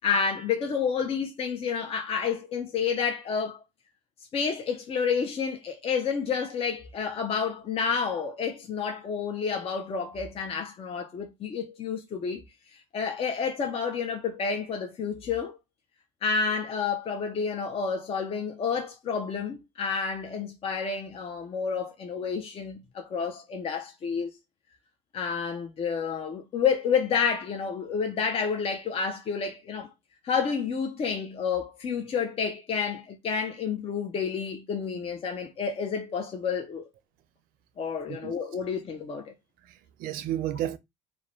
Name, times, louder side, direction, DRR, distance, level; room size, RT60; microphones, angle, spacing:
voice 1, 0.0-3.6 4.3-12.4 12.7-15.6 16.2-24.3 25.1-29.9 30.2-36.9 37.8-39.3, left 6 dB, 40° left, 0.5 m, -30 dB
voice 2, 39.6-40.8, right 12 dB, 65° right, 0.4 m, -32 dB
2.4 x 2.1 x 2.9 m
hypercardioid pair, 70°, 16 cm